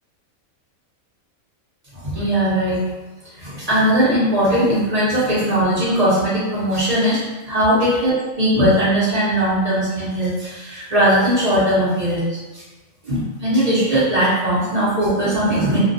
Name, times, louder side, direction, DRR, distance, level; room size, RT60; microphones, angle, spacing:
voice 1, 1.9-2.8 3.3-7.2 7.5-12.6 13.0-15.8, equal, 60° right, -9 dB, 0.4 m, -19 dB
2.3 x 2.2 x 2.5 m, 1.2 s
omnidirectional pair, 1.5 m